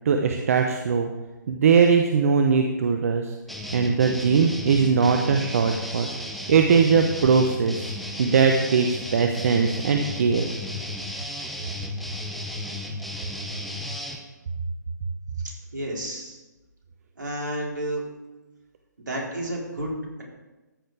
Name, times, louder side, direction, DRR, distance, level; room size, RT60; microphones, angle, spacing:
voice 1, 0.0-1.1 1.5-3.3 3.7-6.1 6.5-7.9 8.2-10.5, right 5 dB, 50° right, 5 dB, 0.8 m, -20 dB
sound 1, 3.5-14.2, left 1 dB, ahead, 0.9 m, -34 dB
voice 2, 15.4-16.4 17.2-18.0 19.0-20.2, right 1 dB, 75° right, -2 dB, 4.0 m, -31 dB
13.5 x 6.6 x 4.8 m, 1.1 s
figure-of-eight pair, 140°, 10 cm